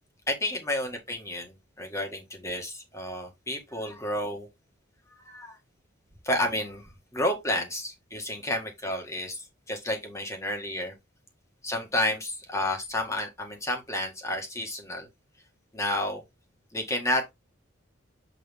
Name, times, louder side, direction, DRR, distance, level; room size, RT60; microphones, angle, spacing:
voice 1, 0.3-4.5 5.2-5.6 6.2-10.9 11.6-15.1 15.7-16.2 16.7-17.3, left 1 dB, 15° left, 1.9 m, -31 dB
7.6 x 3.9 x 3.6 m
head